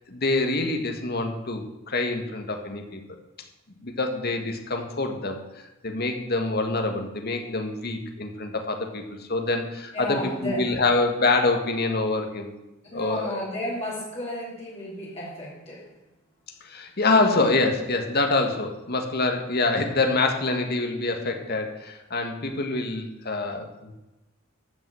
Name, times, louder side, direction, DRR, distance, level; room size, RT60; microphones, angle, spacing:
voice 1, 0.1-3.0 3.8-5.4 5.8-10.2 10.4-12.5 12.9-13.4 16.6-23.9, left 3 dB, 50° left, 4 dB, 1.7 m, -26 dB
voice 2, 9.9-10.6 12.8-15.9, left 1 dB, 30° left, -7 dB, 3.4 m, -33 dB
14.0 x 5.9 x 7.8 m, 0.99 s
head